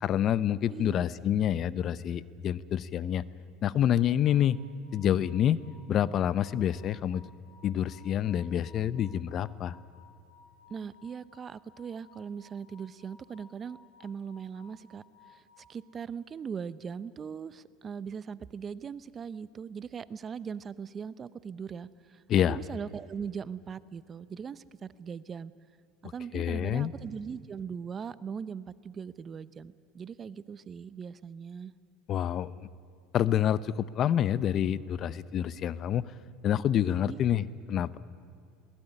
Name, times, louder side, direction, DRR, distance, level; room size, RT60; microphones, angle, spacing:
voice 1, 0.0-3.2 3.6-4.6 4.9-5.6 5.9-7.2 7.6-9.7 22.3-22.6 26.3-26.9 32.1-32.5 33.1-36.0 36.4-38.0, left 10 dB, 45° left, 18 dB, 0.7 m, -27 dB
sound 1, 3.9-16.1, left 4 dB, 60° left, 6.3 m, -59 dB
voice 2, 10.7-25.5 26.0-31.7 37.1-37.2, right 6 dB, 30° right, 17 dB, 0.7 m, -40 dB
20.5 x 19.0 x 10.0 m, 2.4 s
supercardioid pair, 110°, 0 cm